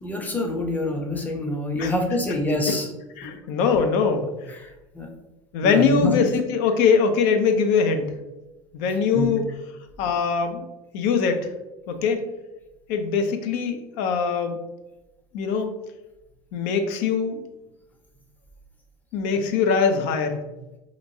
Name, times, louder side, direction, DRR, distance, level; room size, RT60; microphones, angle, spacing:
voice 1, 0.0-2.8 4.6-5.1 5.6-6.1 9.1-9.3, left 1 dB, 10° left, 2 dB, 0.7 m, -26 dB
voice 2, 3.2-4.5 5.5-8.1 8.7-9.4 10.0-10.7 10.9-11.5 11.9-12.2 12.9-14.6 15.3-15.7 16.5-17.4 19.1-20.4, left 5 dB, 55° left, 6 dB, 0.5 m, -22 dB
2.9 x 2.5 x 2.7 m, 1.0 s
hypercardioid pair, 75°, 16 cm